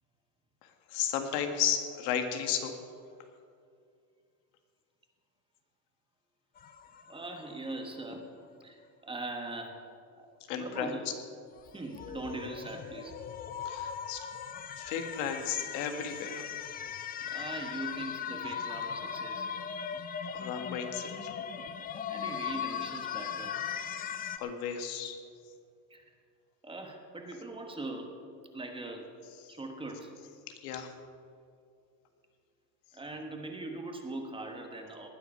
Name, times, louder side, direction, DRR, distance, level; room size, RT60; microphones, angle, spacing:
voice 1, 0.9-2.8 10.5-11.1 13.7-14.2 14.8-16.4 20.3-21.3 24.4-25.2 29.4-29.5 30.5-30.9, left 8 dB, 80° left, 6 dB, 1.8 m, -34 dB
sound 1, 6.6-7.6 11.6-24.4, left 8 dB, 20° left, 0.4 m, -39 dB
voice 2, 7.1-8.3 8.6-9.8 10.2-11.0 11.7-13.1 17.2-19.5 22.1-23.6 25.9-26.0 26.6-28.2 28.5-29.1 29.5-30.2 32.9-35.1, right 2 dB, 10° right, 3 dB, 1.2 m, -41 dB
19.0 x 9.5 x 5.5 m, 2.4 s
cardioid pair, 145°, 48 cm